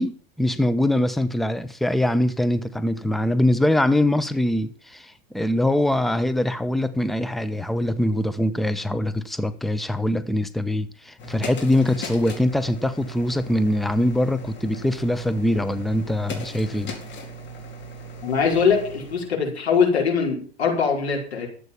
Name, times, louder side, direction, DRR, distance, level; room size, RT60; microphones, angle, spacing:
voice 1, 0.0-16.9, left 1 dB, ahead, 1.0 m, -23 dB
sound 1, 11.2-19.3, equal, 35° left, 4.3 m, -38 dB
voice 2, 18.2-21.5, left 6 dB, 85° left, 4.9 m, -22 dB
12.5 x 8.3 x 7.2 m
hypercardioid pair, 95°, 32 cm